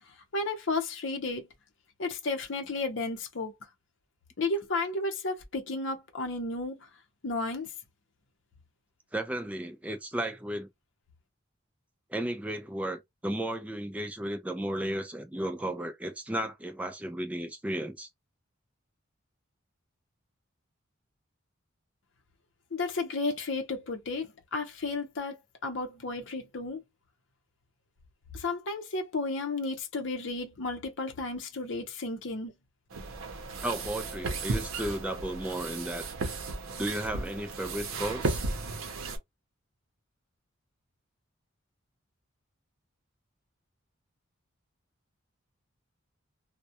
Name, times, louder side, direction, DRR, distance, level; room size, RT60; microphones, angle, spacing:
voice 1, 0.1-1.5 2.0-3.5 4.4-6.9 7.2-7.7 22.7-25.4 25.6-26.8 28.3-32.5, left 3 dB, 60° left, 0.6 m, -33 dB
voice 2, 9.1-10.7 12.1-18.1 33.6-36.1 36.8-38.4, right 1 dB, 5° right, 0.3 m, -34 dB
sound 1, 32.9-39.2, right 3 dB, 90° right, 0.7 m, -35 dB
2.3 x 2.1 x 2.7 m
head